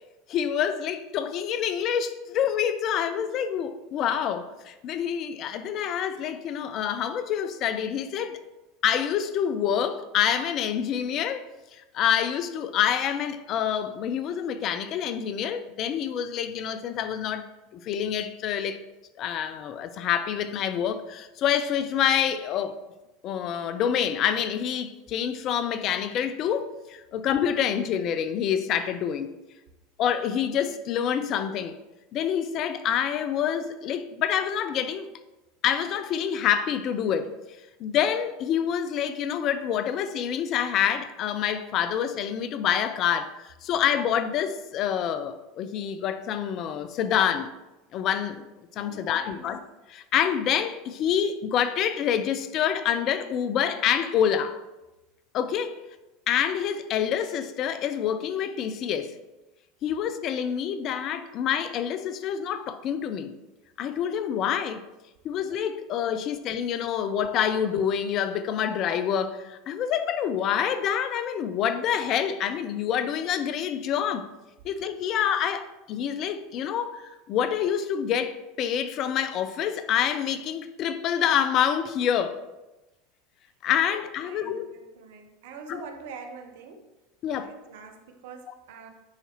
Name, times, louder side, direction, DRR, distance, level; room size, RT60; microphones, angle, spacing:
voice 1, 0.3-8.4 8.8-11.4 11.7-17.5 17.7-18.8 19.2-22.8 23.2-29.3 30.0-31.8 32.1-35.1 35.6-37.3 37.8-47.5 47.9-49.6 49.9-54.6 55.3-55.8 56.3-59.2 59.8-63.3 63.8-64.8 65.2-74.3 74.6-82.4 83.6-84.7 85.7-85.8 87.2-87.5, left 9 dB, 50° left, 0.5 m, -27 dB
voice 2, 48.8-49.5 83.9-86.9 87.2-88.9, right 5 dB, 70° right, 0.8 m, -45 dB
9.6 x 4.1 x 3.0 m
hypercardioid pair, 85°, 0 cm